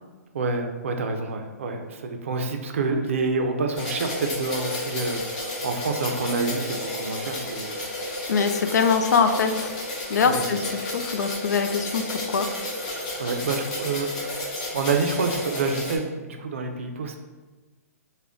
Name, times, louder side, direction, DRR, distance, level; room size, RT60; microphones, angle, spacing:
voice 1, 0.3-7.8 10.2-10.7 13.2-17.2, right 3 dB, 50° right, 5 dB, 0.4 m, -28 dB
sound 1, 3.7-16.0, left 1 dB, 30° left, 0.6 m, -32 dB
voice 2, 8.3-9.7 10.1-10.6 10.9-12.5, left 5 dB, 90° left, 7 dB, 0.4 m, -23 dB
3.7 x 2.1 x 3.4 m, 1.2 s
hypercardioid pair, 175°, 9 cm